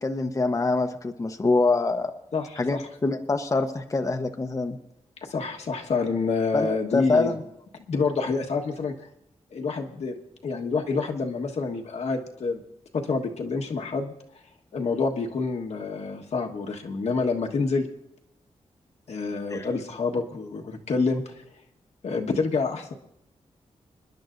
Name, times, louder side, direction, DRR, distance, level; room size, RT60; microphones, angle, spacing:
voice 1, 0.0-2.1 2.6-4.8 6.5-7.4 19.5-19.7, left 3 dB, 30° left, 5 dB, 0.8 m, -25 dB
voice 2, 2.3-2.9 5.2-7.3 7.9-8.9 9.5-10.1 10.4-12.6 12.9-14.1 14.7-17.9 19.1-21.3 22.0-22.9, left 4 dB, 70° left, 1 dB, 1.4 m, -27 dB
27.5 x 10.5 x 2.6 m, 0.80 s
wide cardioid pair, 100°, 12 cm